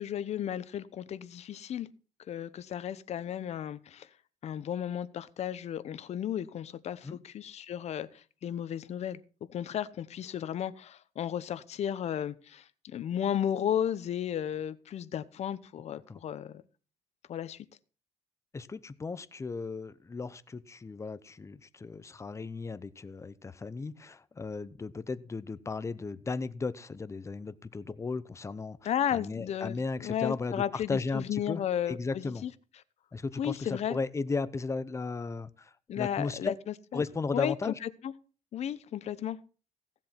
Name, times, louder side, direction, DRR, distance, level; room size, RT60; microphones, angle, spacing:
voice 1, 0.0-1.9 2.3-4.1 4.4-9.2 9.5-16.6 17.3-17.7 28.8-32.5 33.4-34.0 35.9-37.0 37.3-38.1 38.5-39.4, left 10 dB, 60° left, 15 dB, 0.9 m, -34 dB
voice 2, 18.5-28.8 29.1-31.6 31.9-32.4 33.1-36.5 36.9-37.8, left 4 dB, 25° left, 16 dB, 0.8 m, -35 dB
15.5 x 7.5 x 5.8 m, 0.37 s
cardioid pair, 110°, 13 cm